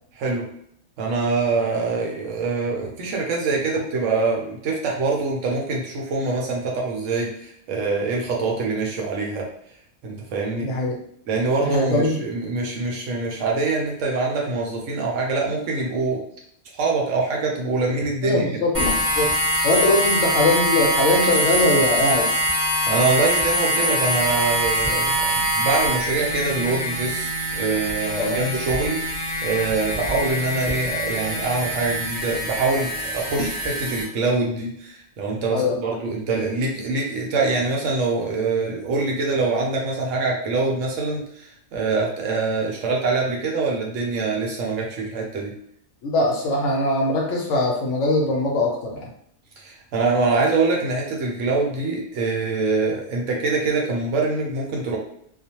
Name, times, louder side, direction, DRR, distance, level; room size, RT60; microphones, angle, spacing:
voice 1, 0.1-0.4 1.0-9.5 10.0-10.7 11.3-16.2 16.7-18.5 22.9-45.5 49.6-55.0, right 3 dB, 70° right, -1 dB, 0.9 m, -24 dB
voice 2, 10.6-10.9 11.6-12.2 18.2-18.7 19.1-19.3 19.6-22.3 28.2-28.4 35.5-35.8 46.0-49.1, left 2 dB, 70° left, -1 dB, 0.8 m, -21 dB
sound 1, 18.7-34.0, equal, 15° right, 0.5 m, -24 dB
2.4 x 2.1 x 2.8 m, 0.68 s
omnidirectional pair, 1.5 m